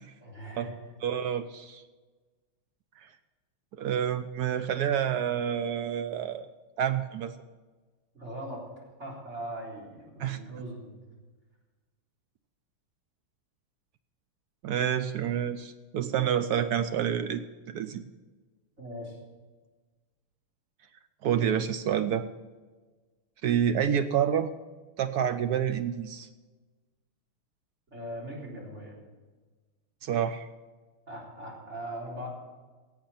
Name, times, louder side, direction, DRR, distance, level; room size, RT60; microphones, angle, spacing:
voice 1, 0.2-0.8 8.1-8.6 9.0-11.0 18.8-19.2 27.9-29.0 31.1-32.3, right 1 dB, 30° right, -4 dB, 4.0 m, -40 dB
voice 2, 1.0-1.8 3.0-3.1 3.7-6.5 6.8-7.3 10.2-10.4 14.6-18.1 21.2-22.3 23.4-24.5 25.0-26.3 30.0-30.5, right 9 dB, 80° right, 10 dB, 0.8 m, -28 dB
17.0 x 8.0 x 5.7 m, 1.3 s
omnidirectional pair, 2.3 m